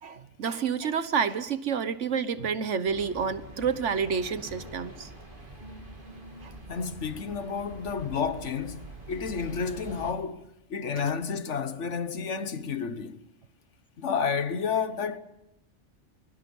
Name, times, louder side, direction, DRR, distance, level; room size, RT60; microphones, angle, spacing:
voice 1, 0.0-5.1 6.4-6.5 11.0-11.1, right 6 dB, 75° right, 1.5 m, -29 dB
sound 1, 2.9-10.1, right 1 dB, 45° right, 3.3 m, -45 dB
voice 2, 6.7-13.2 14.0-15.2, left 6 dB, 75° left, 1.5 m, -31 dB
29.5 x 22.5 x 5.5 m
omnidirectional pair, 1.3 m